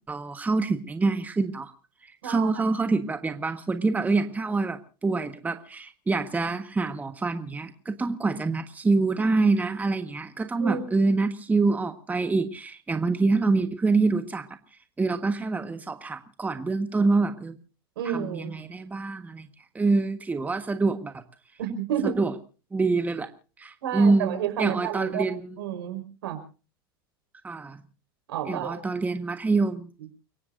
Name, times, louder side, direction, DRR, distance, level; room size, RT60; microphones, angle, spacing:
voice 1, 0.1-1.7 2.0-14.5 15.0-17.6 18.0-19.5 19.7-21.2 22.0-22.3 22.7-23.3 23.6-25.6 27.4-27.8 28.5-29.9, right 3 dB, 15° right, 8 dB, 1.4 m, -26 dB
voice 2, 2.2-2.6 10.6-10.8 18.0-18.5 21.6-22.2 23.8-25.3 25.6-26.4 28.3-28.8, right 9 dB, 80° right, 6 dB, 5.3 m, -30 dB
30.0 x 17.0 x 2.6 m, 0.37 s
hypercardioid pair, 105°, 12 cm